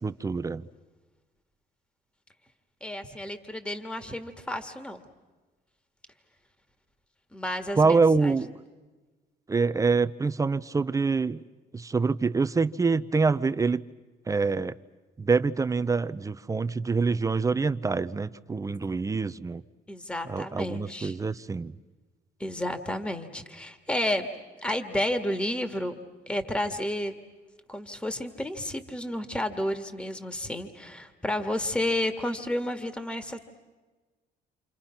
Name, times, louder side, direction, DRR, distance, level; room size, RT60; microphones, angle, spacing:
voice 1, 0.0-0.7 7.8-8.5 9.5-11.4 11.7-13.8 14.3-14.7 15.2-19.6 20.2-21.8, right 4 dB, 20° right, 0.7 m, -25 dB
voice 2, 2.8-5.0 7.3-8.0 8.2-8.3 19.9-21.2 22.4-24.3 24.6-26.0 26.3-27.1 27.7-33.4, left 1 dB, 5° left, 1.8 m, -31 dB
28.5 x 28.0 x 5.9 m
cardioid pair, 110°, 17 cm